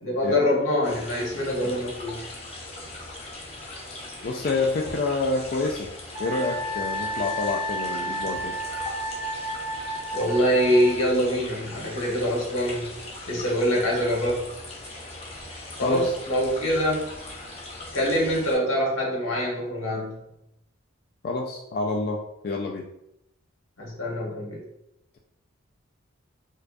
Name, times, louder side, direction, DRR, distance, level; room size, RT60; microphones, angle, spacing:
voice 1, 0.0-2.2 10.1-12.9 13.3-14.4 15.8-17.1 17.9-20.2 23.8-24.6, equal, 90° left, -3 dB, 1.3 m, -24 dB
sound 1, 0.8-18.5, left 2 dB, 30° left, 0.7 m, -40 dB
voice 2, 4.2-5.9 6.2-8.5 15.8-16.1 21.2-22.2 22.4-22.8, left 3 dB, 45° left, 1 dB, 0.3 m, -27 dB
Wind instrument woodwind instrument, 6.1-11.0, equal, 20° right, 0.6 m, -32 dB
4.5 x 2.4 x 2.5 m, 0.82 s
head